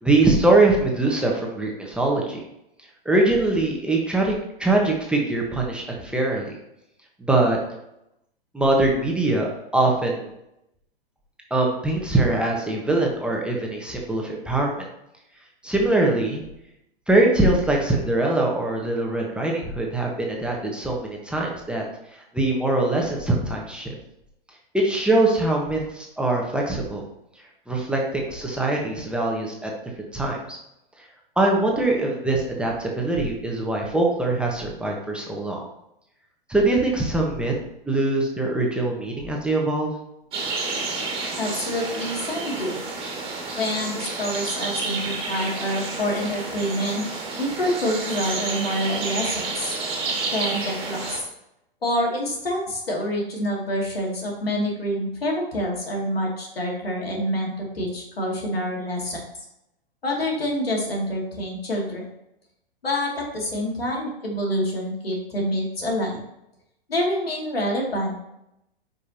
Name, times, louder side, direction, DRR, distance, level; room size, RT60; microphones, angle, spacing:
voice 1, 0.0-2.4 3.0-4.3 4.6-6.6 7.2-7.6 8.5-10.3 11.5-14.8 15.6-16.4 17.1-21.8 22.3-23.9 24.7-27.0 27.7-29.7 30.1-30.6 31.4-35.7 36.5-37.6 37.8-39.9, right 2 dB, 5° right, -1 dB, 1.2 m, -22 dB
sound 1, 40.3-51.2, right 3 dB, 20° right, 2.2 m, -30 dB
voice 2, 41.4-42.8 43.6-47.0 47.3-49.8 50.3-51.2 51.8-59.2 60.0-62.1 62.8-66.2 66.9-68.1, equal, 90° left, -1 dB, 2.6 m, -27 dB
9.3 x 5.4 x 2.9 m, 0.83 s
hypercardioid pair, 120°, 29 cm